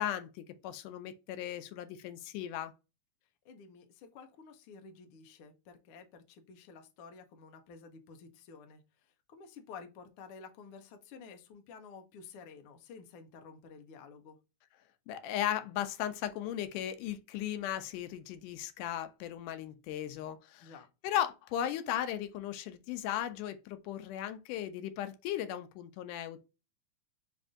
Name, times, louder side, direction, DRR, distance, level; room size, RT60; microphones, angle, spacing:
voice 1, 0.0-2.7 15.1-20.7 21.0-26.4, left 11 dB, 90° left, 2.2 m, -36 dB
voice 2, 3.4-14.4 20.6-20.9, left 5 dB, 75° left, 1.3 m, -52 dB
5.3 x 2.6 x 3.5 m
omnidirectional pair, 3.6 m